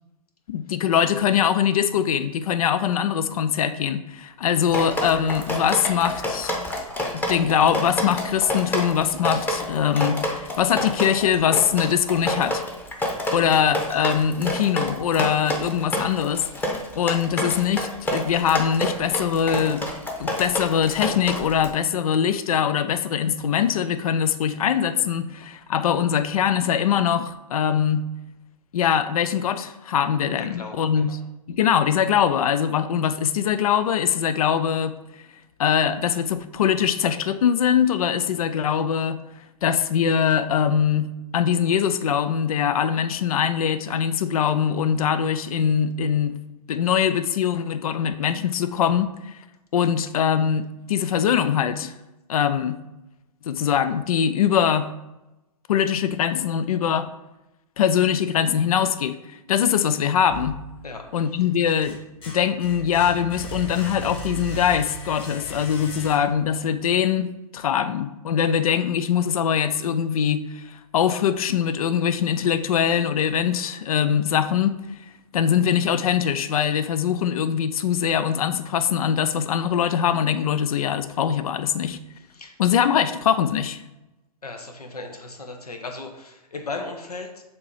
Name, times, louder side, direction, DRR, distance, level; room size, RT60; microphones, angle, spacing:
voice 1, 0.5-6.5 7.1-12.6 13.3-16.4 17.0-19.9 20.2-28.1 28.7-31.1 31.5-35.0 35.6-39.2 39.6-46.4 46.7-49.3 49.7-51.9 52.3-52.8 53.4-54.9 55.7-57.1 57.8-60.6 61.1-62.0 62.3-74.7 75.3-82.0 82.6-83.8, left 8 dB, 70° left, 12 dB, 0.5 m, -22 dB
Drip, 4.7-21.7, left 1 dB, 10° left, 0.8 m, -28 dB
voice 2, 30.4-31.2 60.8-61.5 82.2-82.6 84.4-87.4, left 3 dB, 90° left, 4 dB, 1.0 m, -37 dB
sound 1, 60.3-61.1 61.5-66.6, equal, 25° left, 1.5 m, -37 dB
6.9 x 2.9 x 4.8 m, 0.97 s
hypercardioid pair, 115°, 19 cm